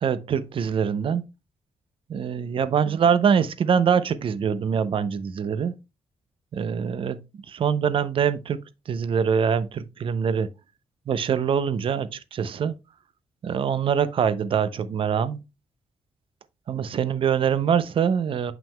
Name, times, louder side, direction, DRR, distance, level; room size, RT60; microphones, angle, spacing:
voice 1, 0.0-1.2 2.1-5.7 6.5-10.5 11.1-12.7 13.4-15.4 16.7-18.5, right 7 dB, 55° right, 0.5 m, -24 dB
7.2 x 5.9 x 2.2 m
cardioid pair, 115°, 11 cm